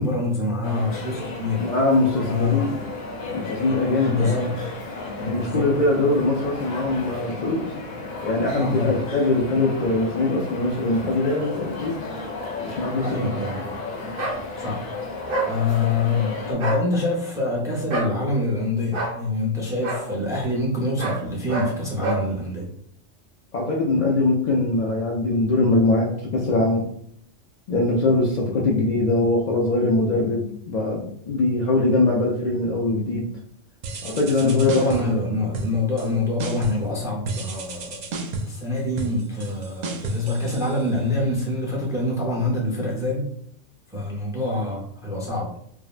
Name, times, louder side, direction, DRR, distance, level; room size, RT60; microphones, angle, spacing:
voice 1, 0.0-1.7 2.2-2.7 4.0-4.6 5.2-5.8 8.6-9.0 13.0-13.6 14.6-15.0 15.4-22.7 34.4-38.1 38.4-43.3 43.9-45.5, left 2 dB, 5° right, -3 dB, 0.4 m, -25 dB
sound 1, 0.6-16.5, left 3 dB, 60° left, 0.8 m, -34 dB
voice 2, 1.6-2.8 3.3-4.5 5.3-7.6 8.2-12.1 12.6-13.3 23.5-26.9 27.7-33.3 34.0-35.2 40.3-40.4 42.4-42.9, left 2 dB, 85° left, -3 dB, 0.3 m, -22 dB
sound 2, 14.2-14.4 15.3-15.5 16.5-16.8 17.9-18.1 18.9-19.2 19.8-20.0 21.0-21.2 21.5-21.7 22.0-22.2, right 2 dB, 55° right, 0.8 m, -26 dB
sound 3, 33.8-35.2 35.5-36.1 36.4-36.9 37.3-41.3, right 3 dB, 85° right, 0.3 m, -32 dB
3.5 x 2.0 x 2.4 m, 0.67 s
omnidirectional pair, 1.3 m